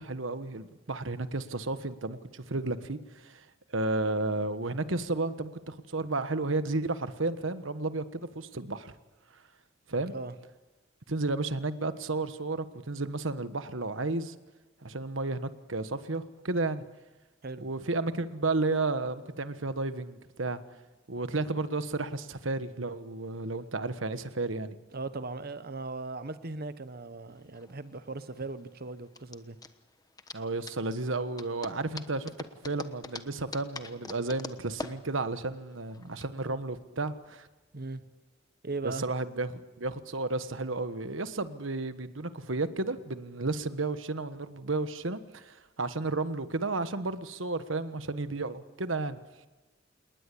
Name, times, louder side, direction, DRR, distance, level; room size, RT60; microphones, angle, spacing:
voice 1, 0.0-8.9 9.3-9.4 9.9-10.1 11.1-14.3 14.8-16.8 17.6-20.6 21.1-24.8 30.3-32.3 32.6-37.5 38.8-49.2, right 3 dB, 70° right, 1.3 m, -32 dB
voice 2, 24.9-29.6 37.7-38.0 38.6-39.1, right 3 dB, 50° right, 1.1 m, -38 dB
sound 1, 27.3-36.3, left 3 dB, 20° left, 1.1 m, -44 dB
28.5 x 20.0 x 8.5 m
head